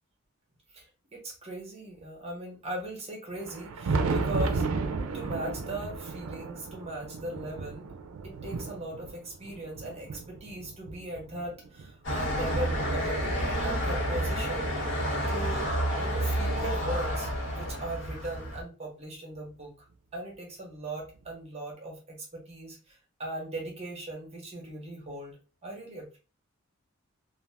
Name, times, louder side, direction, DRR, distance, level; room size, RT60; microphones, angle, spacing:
voice 1, 0.7-4.7 5.0-7.9 8.2-15.0 15.3-19.9 20.1-25.4 25.6-26.2, right 1 dB, 30° right, -1 dB, 1.0 m, -39 dB
Thunder, 3.3-11.9 12.5-14.3 15.4-15.5 16.1-16.2 18.0-18.1 19.5-19.6 21.2-21.3, right 4 dB, 75° right, 0.5 m, -34 dB
sound 1, 12.0-18.6, equal, 60° left, 1.2 m, -29 dB
2.4 x 2.4 x 3.4 m, 0.34 s
head